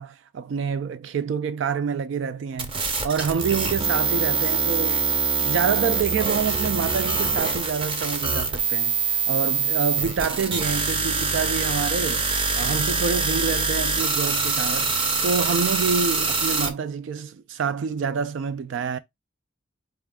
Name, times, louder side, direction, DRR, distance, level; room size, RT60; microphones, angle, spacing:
voice 1, 0.0-5.1 5.4-12.3 12.6-14.9 15.2-19.0, right 6 dB, 65° right, 0.3 m, -27 dB
sound 1, 2.6-16.7, right 4 dB, 25° right, 0.6 m, -24 dB
4.2 x 2.3 x 3.4 m
head